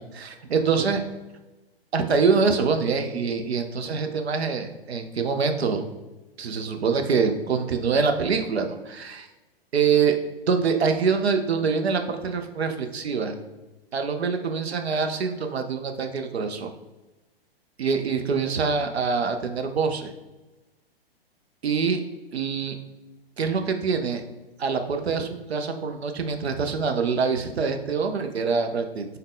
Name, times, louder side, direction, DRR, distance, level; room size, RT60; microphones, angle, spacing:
voice 1, 0.1-1.0 1.9-5.8 6.4-9.3 9.7-10.2 10.5-13.3 13.9-16.7 17.8-20.1 21.6-22.0 22.3-22.8 23.4-24.2 24.6-29.1, right 5 dB, 90° right, 6 dB, 0.5 m, -25 dB
3.6 x 2.2 x 3.6 m, 1.1 s
hypercardioid pair, 120°, 31 cm